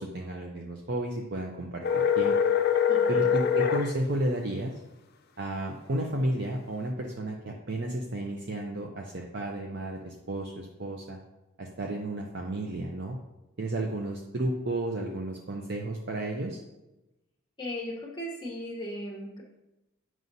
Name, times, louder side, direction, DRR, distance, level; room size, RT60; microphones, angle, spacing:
voice 1, 0.0-2.4 3.1-4.7 5.4-11.2 11.6-13.2 13.6-16.6, right 1 dB, 55° right, 1 dB, 0.6 m, -32 dB
sound 1, 1.8-3.9, left 7 dB, 50° left, 0.5 m, -24 dB
voice 2, 2.9-3.3 17.6-19.4, left 1 dB, 20° left, -3 dB, 0.9 m, -37 dB
9.2 x 6.2 x 2.7 m, 0.98 s
head